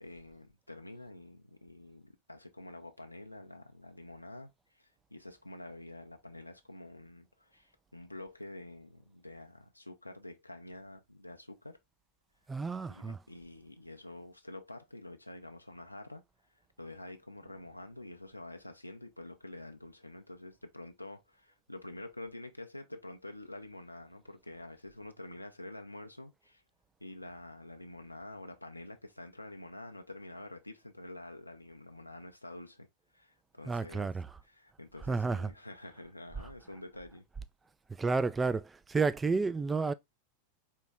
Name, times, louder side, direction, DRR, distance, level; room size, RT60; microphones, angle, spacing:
voice 1, 0.0-11.8 12.9-16.2 16.8-26.6 27.0-32.9 33.1-34.1 34.4-37.2, left 1 dB, 85° left, 0.7 m, -48 dB
voice 2, 12.5-13.2 33.7-34.3 35.0-35.5 36.4-36.5 38.0-39.9, right 4 dB, 15° right, 0.4 m, -31 dB
4.6 x 3.0 x 3.5 m
figure-of-eight pair, 90°, 0 cm